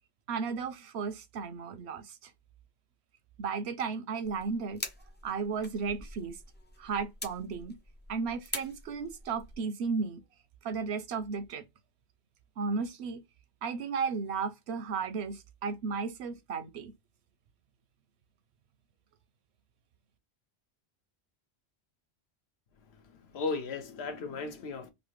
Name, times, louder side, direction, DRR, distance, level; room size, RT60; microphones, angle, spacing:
voice 1, 0.3-2.3 3.4-4.8 5.2-6.4 6.8-7.8 8.1-10.2 10.6-11.6 12.6-13.2 13.6-16.9, right 5 dB, 80° right, 0.9 m, -34 dB
sound 1, 4.2-9.6, left 2 dB, 15° left, 0.4 m, -44 dB
voice 2, 23.0-24.9, left 4 dB, 75° left, 1.0 m, -36 dB
3.2 x 2.6 x 3.0 m
omnidirectional pair, 1.1 m